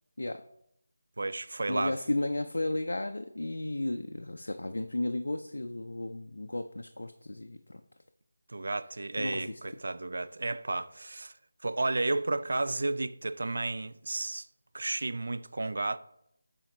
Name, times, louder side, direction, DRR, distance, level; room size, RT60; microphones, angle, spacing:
voice 1, 1.2-2.0 8.5-11.3 11.6-14.5 14.7-16.0, right 2 dB, 65° right, 0.3 m, -32 dB
voice 2, 1.7-7.8 9.2-9.5, left 1 dB, 80° left, 0.4 m, -34 dB
8.7 x 4.2 x 2.9 m
figure-of-eight pair, 165°, 0 cm